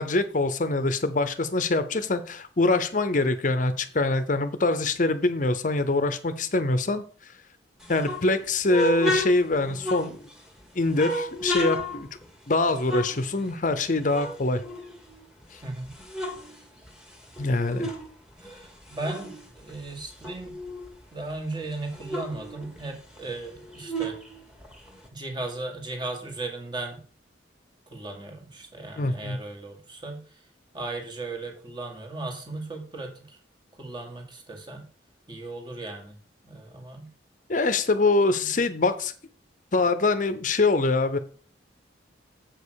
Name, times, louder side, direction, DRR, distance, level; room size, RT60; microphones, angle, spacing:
voice 1, 0.0-7.0 7.9-10.3 10.7-12.1 12.5-14.6 15.5-15.6 17.4-17.9 29.0-29.4 37.5-39.1 39.7-41.2, left 2 dB, 45° left, 11 dB, 0.7 m, -24 dB
sound 1, 7.8-10.5 10.9-13.8 14.1-15.4 15.8-18.1 18.4-20.9 21.3-21.4 21.6-25.1, equal, 5° right, 1.6 m, -33 dB
voice 2, 15.6-15.9 18.4-20.6 21.1-24.2 25.1-27.0 27.9-30.2 30.7-33.4 33.8-34.9 35.3-36.2 36.4-37.1 38.4-38.5, right 2 dB, 25° right, 3 dB, 1.8 m, -36 dB
7.7 x 5.4 x 6.3 m, 0.41 s
head